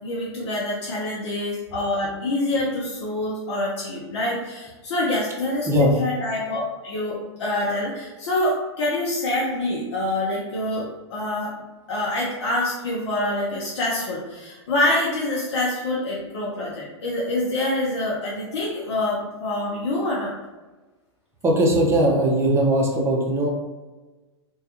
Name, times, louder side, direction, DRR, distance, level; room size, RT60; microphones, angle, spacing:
voice 1, 0.0-11.5 11.9-20.3, left 1 dB, 70° left, -5 dB, 0.6 m, -26 dB
voice 2, 21.4-23.5, right 1 dB, 15° right, -2 dB, 0.6 m, -19 dB
2.2 x 2.2 x 2.8 m, 1.2 s
hypercardioid pair, 115°, 15 cm